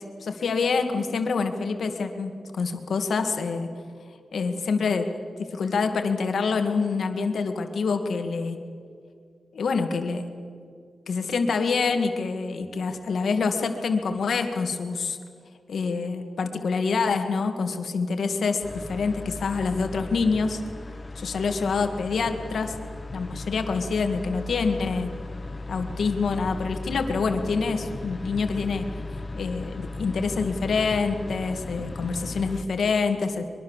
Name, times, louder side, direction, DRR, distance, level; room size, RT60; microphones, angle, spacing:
voice 1, 0.0-3.7 4.3-5.1 5.4-8.6 9.5-10.3 11.1-15.2 15.7-20.6 21.2-22.7 23.1-25.1 25.7-28.9 29.3-33.4, left 4 dB, 75° left, 6 dB, 2.2 m, -26 dB
sound 1, 18.6-32.6, left 2 dB, 25° left, 1.2 m, -37 dB
23.5 x 22.5 x 7.4 m, 2.1 s
wide cardioid pair, 130°, 0 cm